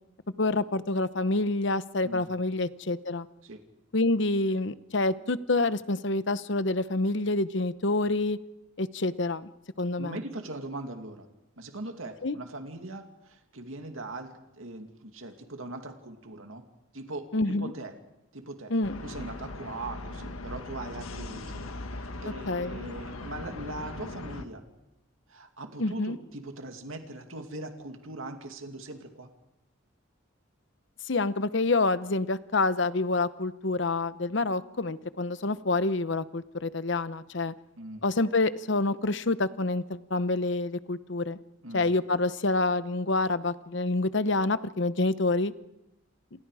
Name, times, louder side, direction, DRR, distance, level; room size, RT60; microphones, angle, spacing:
voice 1, 0.4-3.3 3.9-8.4 8.8-9.5 9.8-10.2 12.2-12.4 17.3-17.7 18.7-19.0 22.5-22.8 25.8-26.2 31.0-37.5 38.0-41.4 41.7-45.5, left 2 dB, 60° left, 14 dB, 0.9 m, -27 dB
voice 2, 10.0-11.3 11.6-16.6 16.9-17.9 18.3-18.7 19.0-24.6 25.3-29.3 37.8-38.0 41.6-41.9, right 2 dB, 80° right, 5 dB, 2.4 m, -40 dB
sound 1, 18.8-24.4, left 2 dB, 85° left, 1.7 m, -39 dB
28.5 x 27.5 x 4.9 m, 0.91 s
head